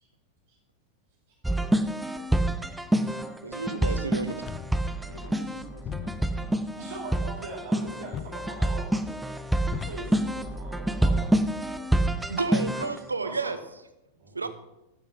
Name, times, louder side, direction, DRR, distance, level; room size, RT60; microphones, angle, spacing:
sound 1, 1.4-13.0, right 1 dB, 5° right, 0.7 m, -27 dB
voice 1, 1.8-2.2 3.6-4.3 5.0-6.6, left 1 dB, 75° left, 3 dB, 2.3 m, -45 dB
voice 2, 3.4-4.5 12.2-13.6 14.3-14.5, right 3 dB, 80° right, 12 dB, 0.9 m, -31 dB
sound 2, 4.4-11.8, left 9 dB, 30° left, 0.5 m, -43 dB
voice 3, 6.8-9.0 9.7-11.4 13.2-13.5 14.1-14.4, right 3 dB, 65° right, -6 dB, 4.2 m, -41 dB
12.0 x 9.6 x 5.9 m, 0.92 s
figure-of-eight pair, 90°, 0 cm